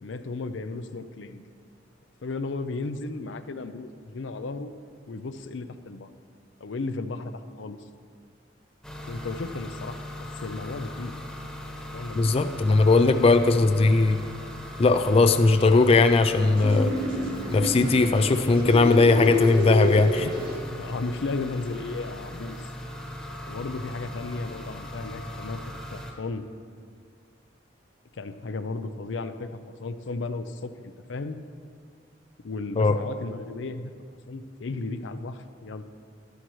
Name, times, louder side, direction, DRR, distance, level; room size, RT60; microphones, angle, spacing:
voice 1, 0.0-1.4 2.2-4.7 5.1-6.1 6.6-7.8 9.1-11.1 11.9-12.5 19.2-19.5 20.7-22.7 23.5-25.6 25.9-26.4 28.1-29.5 29.8-31.4 32.4-33.9 34.3-35.8, left 3 dB, 85° left, 10 dB, 0.5 m, -34 dB
sound 1, 8.8-26.1, left 1 dB, 5° left, 1.1 m, -39 dB
voice 2, 12.2-14.2 14.8-16.9 17.5-20.3 32.8-33.0, left 3 dB, 35° left, 9 dB, 0.4 m, -19 dB
sound 2, 16.6-20.6, left 1 dB, 55° right, 2.2 m, -29 dB
12.5 x 11.5 x 3.1 m, 2.1 s
head